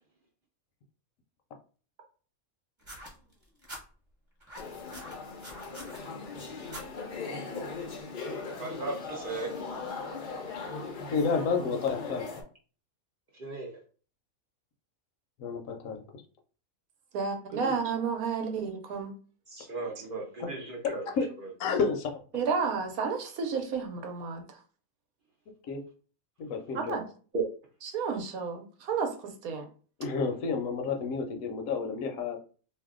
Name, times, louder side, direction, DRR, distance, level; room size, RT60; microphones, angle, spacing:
sound 1, 2.8-3.8 4.4-6.0 6.7-6.9 7.8-7.9, equal, 25° right, 1.0 m, -44 dB
sound 2, 4.6-12.4, left 4 dB, 55° left, 0.5 m, -39 dB
voice 1, 8.6-9.5 13.3-13.8 17.5-17.8 19.5-21.0 21.4-21.5 27.3-27.4, right 3 dB, 55° right, 0.6 m, -36 dB
voice 2, 11.1-12.3 15.4-16.0 21.2-21.3 21.6-22.1 25.7-25.8 26.4-27.0 30.0-32.4, left 5 dB, 70° left, 1.0 m, -30 dB
voice 3, 17.1-19.1 22.3-24.4 26.7-27.0 27.9-29.6, right 5 dB, 90° right, 1.1 m, -31 dB
2.7 x 2.2 x 3.6 m
omnidirectional pair, 1.5 m